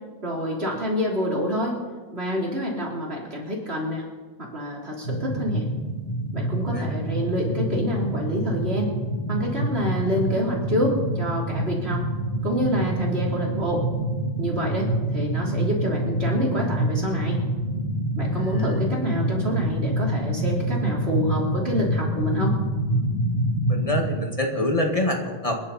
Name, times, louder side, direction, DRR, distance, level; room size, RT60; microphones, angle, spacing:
voice 1, 0.2-1.8 2.1-4.0 4.4-5.7 6.3-8.9 9.3-12.0 12.4-13.8 14.4-17.4 18.2-22.6, equal, 90° right, -3 dB, 4.2 m, -27 dB
sound 1, 5.0-24.0, right 1 dB, 85° left, 3.5 m, -26 dB
voice 2, 18.3-18.8 23.7-25.6, left 1 dB, 35° left, 2 dB, 2.1 m, -26 dB
27.5 x 11.0 x 4.3 m, 1.4 s
omnidirectional pair, 1.0 m